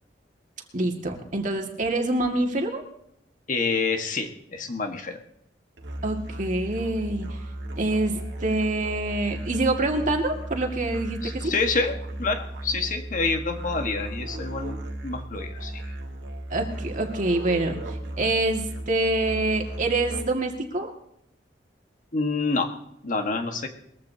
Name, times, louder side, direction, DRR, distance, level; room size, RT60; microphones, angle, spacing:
voice 1, 0.7-2.8 6.0-7.3 7.8-11.5 16.5-20.9, right 2 dB, 45° right, 2 dB, 2.0 m, -26 dB
voice 2, 3.5-5.2 11.2-15.8 22.1-22.8 23.0-23.7, left 3 dB, 45° left, 5 dB, 1.5 m, -27 dB
Musical instrument, 5.8-20.5, right 1 dB, 75° right, 1.7 m, -35 dB
21.5 x 14.5 x 2.8 m, 0.76 s
head